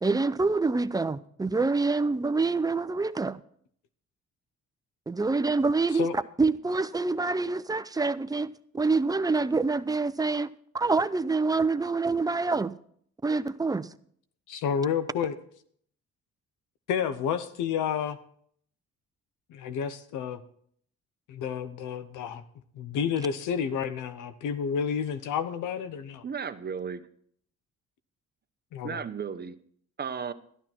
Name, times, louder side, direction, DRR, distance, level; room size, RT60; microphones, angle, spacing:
voice 1, 0.0-3.4 5.1-12.7 13.2-13.9, right 3 dB, 10° right, 0.6 m, -26 dB
voice 2, 14.5-15.4 16.9-18.2 19.5-20.4 21.3-22.4 22.8-26.2 28.7-29.0, left 7 dB, 90° left, 0.9 m, -30 dB
voice 3, 26.2-27.1 28.8-29.6 30.0-30.3, right 6 dB, 35° right, 0.9 m, -34 dB
12.5 x 11.5 x 4.5 m
cardioid pair, 90°, 30 cm